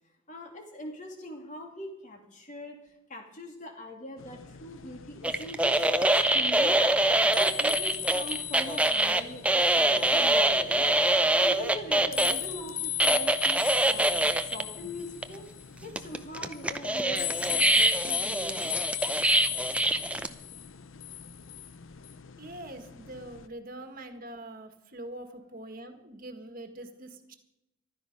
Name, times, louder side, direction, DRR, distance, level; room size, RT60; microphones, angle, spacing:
voice 1, 0.3-6.8 7.3-10.9 11.4-15.4 15.8-18.7, left 1 dB, 40° left, 2 dB, 2.8 m, -42 dB
sound 1, 4.2-23.5, left 11 dB, 75° left, 0.7 m, -38 dB
sound 2, 5.2-12.4 13.0-14.6 15.2-15.3 16.0-20.3, right 1 dB, 5° right, 0.6 m, -24 dB
voice 2, 22.4-27.3, right 1 dB, 45° right, 6 dB, 1.8 m, -43 dB
14.5 x 12.5 x 5.4 m, 0.89 s
head